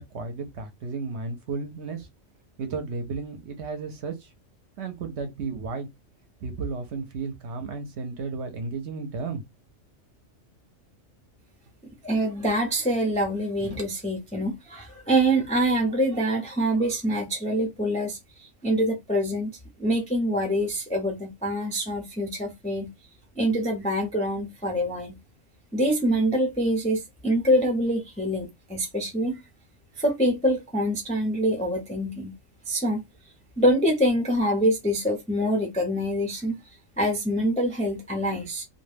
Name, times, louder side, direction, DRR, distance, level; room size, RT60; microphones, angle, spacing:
voice 1, 0.0-2.1 2.6-4.3 4.8-5.9 6.4-9.4, right 4 dB, 65° right, 0.8 m, -33 dB
voice 2, 12.0-19.5 19.8-22.9 23.3-25.2 25.7-29.4 30.0-32.3 32.7-33.0 33.6-36.6 37.0-38.6, equal, 10° left, 0.3 m, -25 dB
2.3 x 2.2 x 3.2 m
omnidirectional pair, 1.4 m